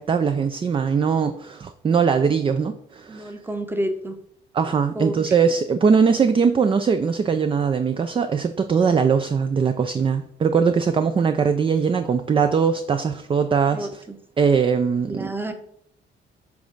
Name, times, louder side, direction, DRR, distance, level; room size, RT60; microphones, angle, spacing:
voice 1, 0.0-3.3 4.5-13.9 14.4-15.3, right 6 dB, 25° right, 9 dB, 0.4 m, -21 dB
voice 2, 3.1-4.2 4.9-5.2 13.7-14.2 15.1-15.5, right 1 dB, 10° right, 7 dB, 0.8 m, -29 dB
7.0 x 3.5 x 3.9 m, 0.69 s
cardioid pair, 90°, 20 cm